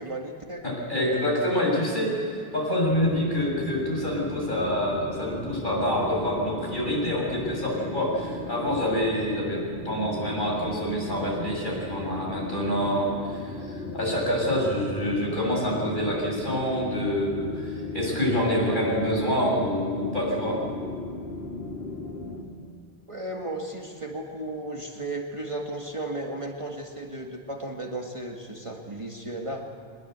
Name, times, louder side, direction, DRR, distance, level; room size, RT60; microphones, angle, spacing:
voice 1, 0.0-0.6 23.1-29.7, right 1 dB, 30° right, 1 dB, 1.8 m, -34 dB
voice 2, 0.6-20.6, equal, 50° left, -3 dB, 7.3 m, -27 dB
sound 1, 2.8-22.4, left 2 dB, 75° left, 3.1 m, -36 dB
23.0 x 20.5 x 8.1 m, 2.4 s
omnidirectional pair, 1.0 m